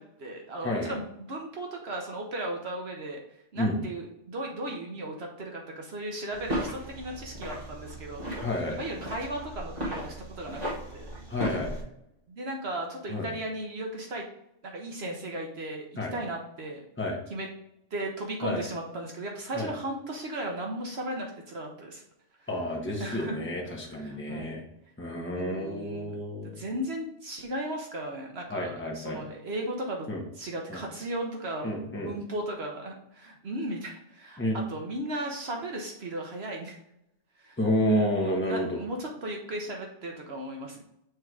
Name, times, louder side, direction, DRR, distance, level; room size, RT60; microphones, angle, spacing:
voice 1, 0.0-3.2 3.5-8.3 8.7-11.1 12.3-14.2 14.6-15.8 16.1-16.8 17.3-17.5 17.9-22.0 22.4-22.5 23.0-23.4 23.9-24.6 25.2-26.2 26.6-30.1 30.3-36.8 37.4-37.6 37.9-40.8, right 1 dB, 60° right, 1 dB, 1.2 m, -36 dB
voice 2, 0.6-0.9 3.6-3.7 8.4-8.8 11.3-11.7 13.1-13.3 16.0-16.1 17.0-17.2 18.4-18.6 19.5-19.7 22.5-24.6 25.0-26.6 28.5-29.2 30.1-30.2 30.7-30.8 31.6-32.1 34.4-34.6 37.6-38.8, left 1 dB, 10° left, -1 dB, 1.2 m, -30 dB
sound 1, 6.3-11.8, equal, 35° right, 2.1 m, -36 dB
6.3 x 3.6 x 4.6 m, 0.79 s
omnidirectional pair, 1.2 m